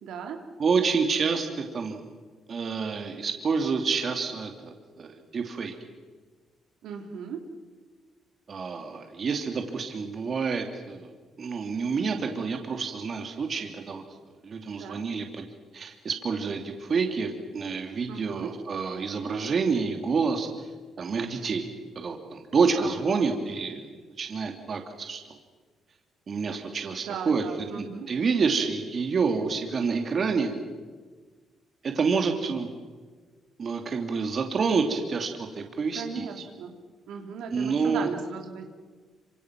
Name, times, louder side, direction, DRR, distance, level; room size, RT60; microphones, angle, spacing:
voice 1, 0.0-0.4 6.8-7.5 14.8-15.1 18.1-18.5 22.7-23.3 27.0-28.1 35.9-36.7 37.1-38.6, right 6 dB, 85° right, 3 dB, 3.1 m, -37 dB
voice 2, 0.6-2.0 2.5-5.7 8.5-14.0 14.4-15.5 15.7-20.5 21.0-21.7 22.0-23.9 24.2-25.2 26.3-30.5 31.8-32.7 33.6-36.3 37.5-38.1, right 5 dB, 45° right, 4 dB, 2.7 m, -28 dB
26.5 x 25.5 x 6.1 m, 1.4 s
cardioid pair, 90°, 0 cm